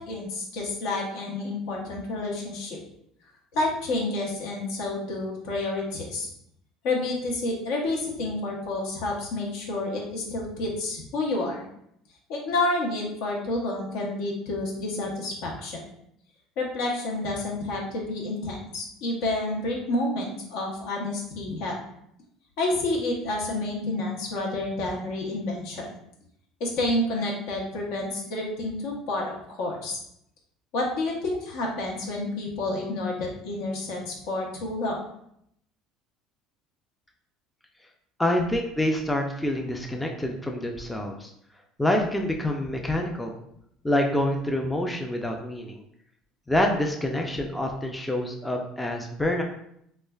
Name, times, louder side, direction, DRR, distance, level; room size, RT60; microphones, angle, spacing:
voice 1, 0.0-2.8 3.5-6.3 6.8-11.6 12.3-15.8 16.6-21.8 22.6-25.9 26.6-30.0 30.7-35.0, left 2 dB, 75° left, -1 dB, 0.7 m, -29 dB
voice 2, 38.2-41.3 41.8-43.4 43.8-45.8 46.5-49.4, left 1 dB, 10° left, 1 dB, 0.3 m, -26 dB
3.1 x 2.2 x 2.2 m, 0.74 s
supercardioid pair, 115°, 0 cm